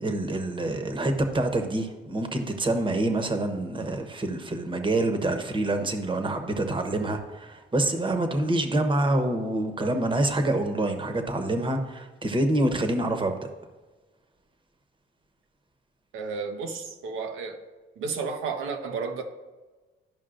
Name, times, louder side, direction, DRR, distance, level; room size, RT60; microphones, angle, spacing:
voice 1, 0.0-13.5, right 1 dB, 25° right, 6 dB, 1.0 m, -26 dB
voice 2, 16.1-17.6 18.0-19.2, right 5 dB, 90° right, 5 dB, 1.0 m, -32 dB
12.5 x 5.3 x 2.6 m, 1.2 s
cardioid pair, 90°, 20 cm